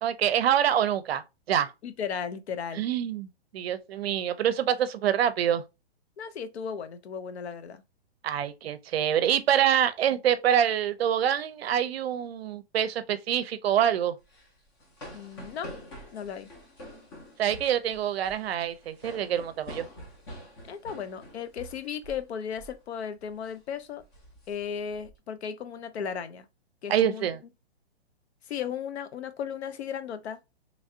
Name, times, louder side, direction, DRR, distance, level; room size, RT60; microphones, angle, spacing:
voice 1, 0.0-1.7 2.8-5.6 8.2-14.2 17.4-19.9 26.9-27.4, right 10 dB, 70° right, 0.5 m, -26 dB
voice 2, 1.8-2.9 6.2-7.8 15.1-15.7 16.1-16.5 20.7-24.0 24.5-26.5 26.8-27.3 28.5-30.4, left 7 dB, 75° left, 0.6 m, -35 dB
sound 1, 14.2-22.3 22.6-22.8 23.2-23.5 24.0-25.1, equal, 25° left, 0.5 m, -46 dB
3.1 x 2.5 x 2.6 m
hypercardioid pair, 155°, 32 cm